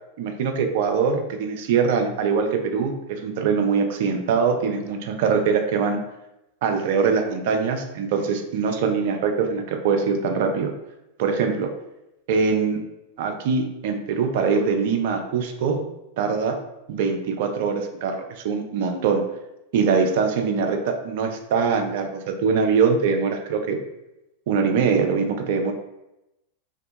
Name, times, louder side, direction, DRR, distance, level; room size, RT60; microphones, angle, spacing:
voice 1, 0.2-6.0 6.6-10.7 11.2-11.7 12.3-12.8 13.2-15.8 16.2-16.6 16.9-19.2 19.7-23.8 24.5-25.7, right 5 dB, 50° right, 4 dB, 0.4 m, -23 dB
2.5 x 2.2 x 2.6 m, 0.91 s
figure-of-eight pair, 90°, 0 cm